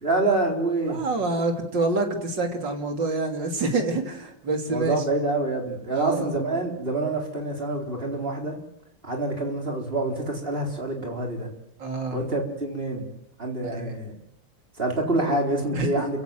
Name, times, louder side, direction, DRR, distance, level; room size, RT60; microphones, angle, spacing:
voice 1, 0.0-1.0 4.7-8.6 9.0-11.5 12.1-13.1 13.4-14.1 14.8-16.2, right 2 dB, 25° right, 2 dB, 4.5 m, -26 dB
voice 2, 0.8-5.0 5.9-6.3 11.8-12.2 13.7-13.9 15.7-15.9, right 3 dB, 65° right, 5 dB, 3.5 m, -27 dB
29.5 x 16.5 x 7.8 m, 0.77 s
omnidirectional pair, 2.2 m